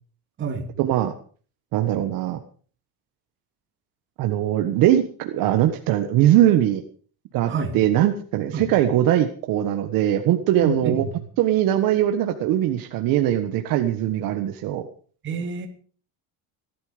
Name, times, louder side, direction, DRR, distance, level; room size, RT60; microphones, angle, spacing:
voice 1, 0.8-1.1 1.7-2.4 4.2-6.8 7.3-11.0 11.4-14.9, right 12 dB, 60° right, 6 dB, 1.5 m, -21 dB
voice 2, 7.5-7.8 8.5-8.7 10.6-11.1 15.2-15.7, right 5 dB, 30° right, 3 dB, 3.0 m, -27 dB
17.5 x 12.5 x 5.1 m, 0.43 s
cardioid pair, 165°, 39 cm